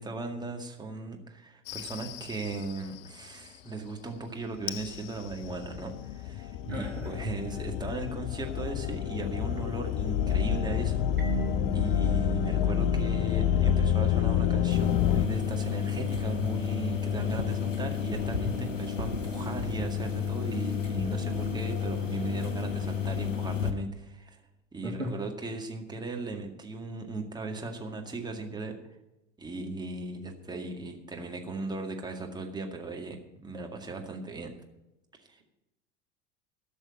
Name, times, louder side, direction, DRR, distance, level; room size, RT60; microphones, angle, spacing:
voice 1, 0.0-24.4 24.7-28.8 29.4-34.5 35.3-35.4, right 3 dB, 10° right, 2 dB, 2.0 m, -37 dB
sound 1, 1.7-2.8 4.7-15.3, left 10 dB, 50° left, 0.6 m, -28 dB
voice 2, 6.6-7.2 24.8-25.1, right 1 dB, 80° right, -2 dB, 2.2 m, -35 dB
Marimba xylophone, 11.2-13.8, right 15 dB, 30° right, 3.5 m, -41 dB
sound 2, 14.7-23.7, left 7 dB, 85° left, 1.0 m, -31 dB
13.0 x 6.4 x 8.8 m, 0.93 s
figure-of-eight pair, 80°, 37 cm